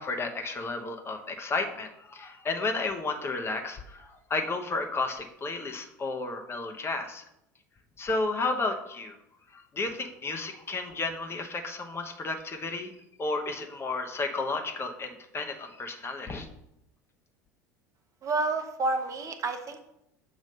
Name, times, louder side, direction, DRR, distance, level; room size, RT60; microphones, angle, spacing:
voice 1, 0.0-7.2 8.0-9.2 9.5-12.9 13.2-16.5, left 3 dB, 25° left, 4 dB, 0.9 m, -32 dB
voice 2, 18.2-19.9, right 3 dB, 35° right, 6 dB, 0.8 m, -29 dB
6.6 x 3.1 x 5.3 m, 0.81 s
figure-of-eight pair, 70°, 9 cm